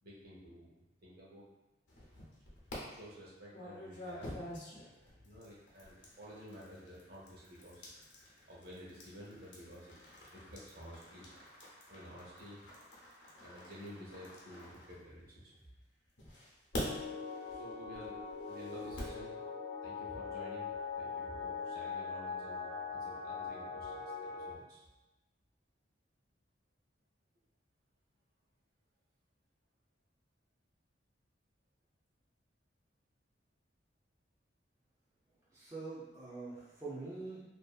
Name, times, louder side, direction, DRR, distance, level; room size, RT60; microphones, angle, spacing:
voice 1, 0.0-1.5 2.9-4.3 5.0-8.0 8.5-10.0 10.3-11.3 11.9-12.6 13.4-15.6 17.5-18.2 18.5-19.4 19.8-24.9, equal, 60° right, -5 dB, 0.8 m, -52 dB
sound 1, 1.9-2.8 3.5-15.5 16.2-19.2, left 1 dB, 75° left, 0.7 m, -48 dB
sound 2, 16.7-24.5, left 5 dB, 45° left, 0.4 m, -42 dB
voice 2, 35.5-37.4, right 3 dB, 20° right, -9 dB, 0.5 m, -44 dB
2.6 x 2.5 x 2.3 m, 1.0 s
head